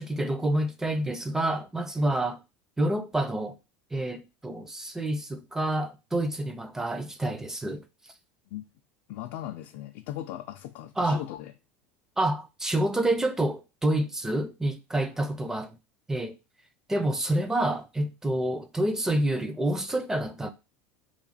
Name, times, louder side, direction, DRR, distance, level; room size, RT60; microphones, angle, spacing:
voice 1, 0.0-2.4 2.8-3.6 3.9-7.8 11.0-11.2 12.2-15.8 16.1-16.4 16.9-20.5, right 1 dB, 10° right, 0.5 m, -28 dB
voice 2, 9.1-11.5, left 12 dB, 65° left, 0.4 m, -38 dB
3.0 x 2.2 x 4.0 m
supercardioid pair, 115°, 6 cm